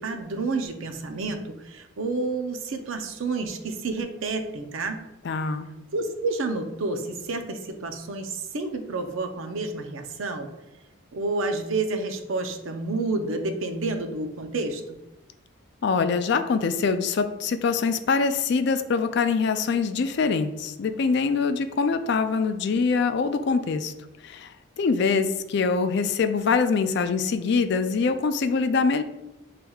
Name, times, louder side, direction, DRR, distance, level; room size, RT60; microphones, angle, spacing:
voice 1, 0.0-5.0 5.9-10.5 11.1-14.8, right 3 dB, 70° right, 6 dB, 0.6 m, -29 dB
voice 2, 5.2-5.7 15.8-23.9 24.2-29.0, left 5 dB, 55° left, 9 dB, 0.3 m, -24 dB
7.0 x 3.3 x 2.3 m, 0.96 s
head